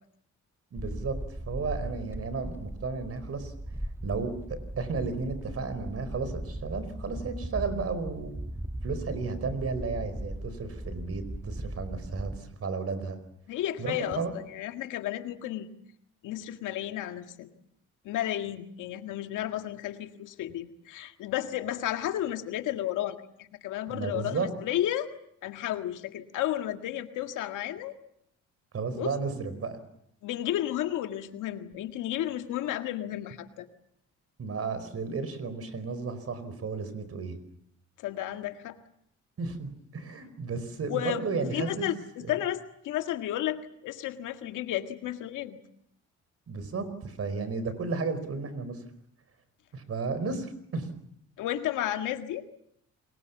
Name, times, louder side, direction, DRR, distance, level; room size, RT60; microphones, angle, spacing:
voice 1, 0.7-1.2 1.5-3.5 4.0-8.3 8.8-13.2 13.8-14.3 23.9-24.5 28.7-29.8 34.4-37.4 39.4-41.9 42.2-42.4 46.5-48.8 49.7-50.9, right 4 dB, 50° right, 13 dB, 4.9 m, -33 dB
sound 1, 0.8-12.4, right 1 dB, 10° right, 1.4 m, -38 dB
voice 2, 13.5-15.7 16.2-17.5 18.0-25.1 25.4-27.9 28.9-29.1 30.2-33.7 38.0-38.8 40.9-41.2 41.5-45.6 51.4-52.6, left 12 dB, 90° left, 7 dB, 1.9 m, -32 dB
28.0 x 22.5 x 7.2 m, 0.73 s
cardioid pair, 90°, 30 cm